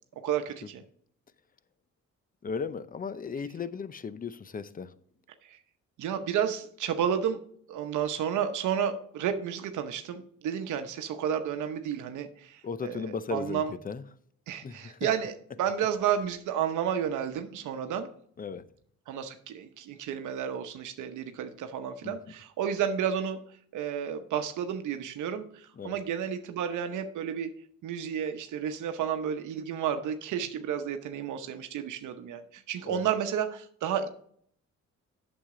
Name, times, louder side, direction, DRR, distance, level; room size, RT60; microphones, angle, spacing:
voice 1, 0.2-0.8 5.4-5.6 6.0-7.4 7.7-13.7 14.5-15.3 15.6-18.1 19.1-23.4 23.7-27.5 27.8-34.1, right 8 dB, 80° right, 0.9 m, -31 dB
voice 2, 2.4-4.9 12.6-14.0 14.6-15.1 18.4-18.6 22.0-22.2 25.8-26.0 32.8-33.1, left 5 dB, 30° left, 0.6 m, -36 dB
8.5 x 7.2 x 3.7 m
cardioid pair, 90°, 30 cm